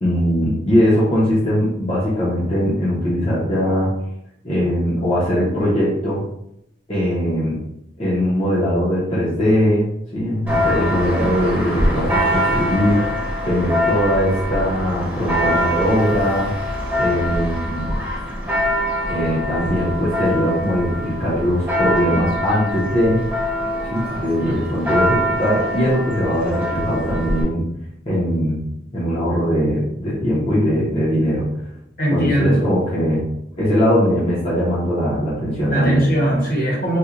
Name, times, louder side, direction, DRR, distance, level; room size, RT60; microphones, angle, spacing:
voice 1, 0.0-3.9 4.4-6.2 6.9-7.6 8.0-9.9 10.1-16.5 17.0-17.9 19.1-23.2 23.9-27.6 28.0-28.6 28.9-31.5 32.1-33.2 33.6-36.0, equal, 35° left, -8 dB, 0.8 m, -20 dB
Church bell, 10.5-27.4, equal, 10° right, 1.0 m, -24 dB
voice 2, 32.0-32.6 35.7-37.0, right 1 dB, 55° left, -4 dB, 1.1 m, -19 dB
4.3 x 2.3 x 2.5 m, 0.79 s
head